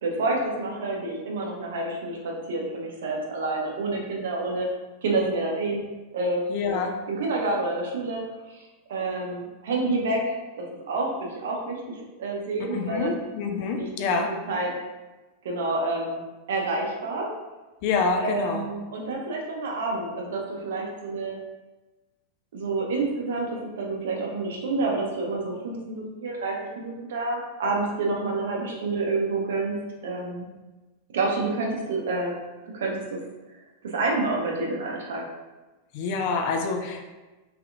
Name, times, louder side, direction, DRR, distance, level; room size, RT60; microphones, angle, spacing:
voice 1, 0.0-4.7 5.0-5.8 6.1-8.2 8.5-8.6 8.9-13.2 13.7-13.8 14.1-14.2 14.5-14.7 15.4-16.2 16.5-17.3 18.2-21.4 22.5-29.8 30.0-30.5 31.1-32.4 32.6-33.2 33.8-35.2, right 3 dB, 60° right, -1 dB, 0.6 m, -28 dB
voice 2, 6.5-7.0 12.7-14.4 17.8-18.7 35.9-37.0, left 4 dB, 45° left, 4 dB, 0.4 m, -27 dB
3.3 x 2.8 x 2.4 m, 1.2 s
figure-of-eight pair, 90°, 0 cm